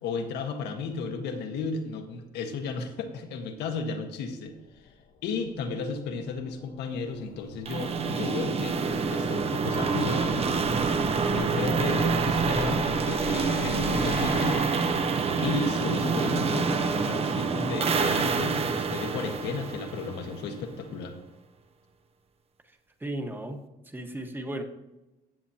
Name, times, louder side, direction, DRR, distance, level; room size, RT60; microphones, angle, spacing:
voice 1, 0.0-4.5 4.8-4.9 5.2-8.8 9.1-10.4 11.3-14.7 15.4-21.1, left 4 dB, 80° left, 5 dB, 1.5 m, -33 dB
sound 1, 4.5-15.9, left 5 dB, 65° left, 1.1 m, -43 dB
sound 2, 7.7-20.5, right 5 dB, 35° right, 0.8 m, -27 dB
voice 2, 22.6-23.6 23.8-24.6, right 1 dB, 10° right, 4 dB, 1.4 m, -36 dB
15.0 x 7.6 x 2.9 m, 1.0 s
cardioid pair, 110°, 17 cm